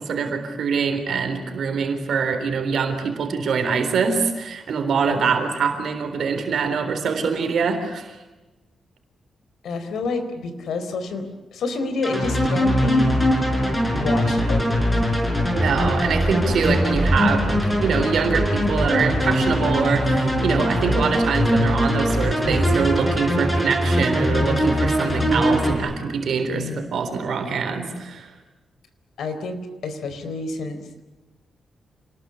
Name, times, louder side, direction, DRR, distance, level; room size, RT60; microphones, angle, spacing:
voice 1, 0.0-8.2 15.5-28.3, right 5 dB, 65° right, 6 dB, 3.8 m, -24 dB
voice 2, 9.6-11.2 11.5-13.3 13.9-15.0 26.5-26.9 29.2-30.8, left 3 dB, 80° left, 8 dB, 4.0 m, -29 dB
sound 1, 12.0-25.7, equal, 10° left, 5.4 m, -21 dB
28.5 x 20.5 x 9.8 m, 1.1 s
wide cardioid pair, 155°, 0 cm